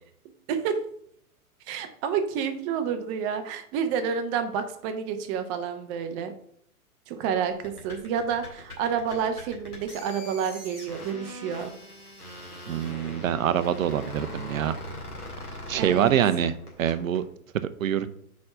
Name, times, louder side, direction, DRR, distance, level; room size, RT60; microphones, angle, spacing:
voice 1, 0.5-0.8 1.7-6.3 7.1-11.7 15.7-16.1, right 7 dB, 25° right, 8 dB, 0.7 m, -29 dB
sound 1, 7.5-17.2, left 1 dB, 90° left, 2.2 m, -41 dB
voice 2, 12.7-14.8 15.7-16.5 16.8-17.2 17.8-18.1, right 9 dB, 65° right, 13 dB, 0.6 m, -25 dB
4.7 x 4.3 x 5.4 m, 0.69 s
figure-of-eight pair, 105°, 44 cm